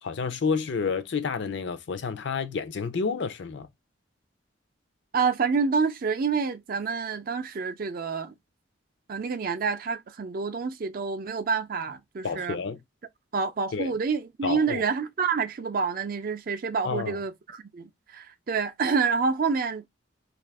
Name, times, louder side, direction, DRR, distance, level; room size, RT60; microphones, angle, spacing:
voice 1, 0.0-3.7 12.2-12.8 13.7-13.9 14.4-14.8 16.8-17.2, left 5 dB, 65° left, 0.5 m, -29 dB
voice 2, 5.1-8.3 9.1-12.6 13.3-19.9, right 5 dB, 50° right, 0.4 m, -28 dB
2.6 x 2.4 x 3.4 m
head